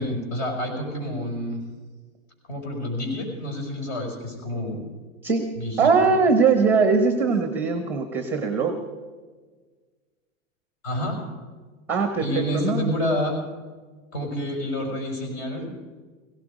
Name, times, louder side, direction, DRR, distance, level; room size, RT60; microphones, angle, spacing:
voice 1, 0.0-1.6 2.5-4.8 5.6-5.9 10.8-11.2 12.2-13.4 14.1-15.7, left 1 dB, 50° left, 2 dB, 5.6 m, -28 dB
voice 2, 5.8-8.8 11.9-12.9, right 4 dB, 5° right, 7 dB, 0.8 m, -21 dB
17.0 x 16.5 x 5.1 m, 1.4 s
supercardioid pair, 160°, 41 cm